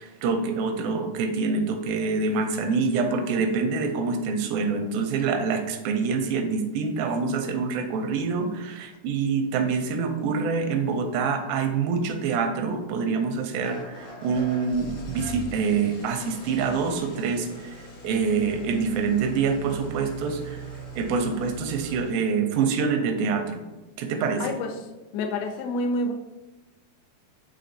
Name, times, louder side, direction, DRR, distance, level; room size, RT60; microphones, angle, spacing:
voice 1, 0.0-17.7 18.0-20.6 21.0-23.6 24.0-24.6, right 5 dB, 85° right, 5 dB, 2.3 m, -26 dB
Engine starting / Idling, 13.6-22.0, right 2 dB, 70° left, 1.3 m, -41 dB
voice 2, 24.4-24.7 25.1-26.1, left 2 dB, 90° left, 5 dB, 2.4 m, -27 dB
5.8 x 3.3 x 2.6 m, 1.1 s
omnidirectional pair, 4.1 m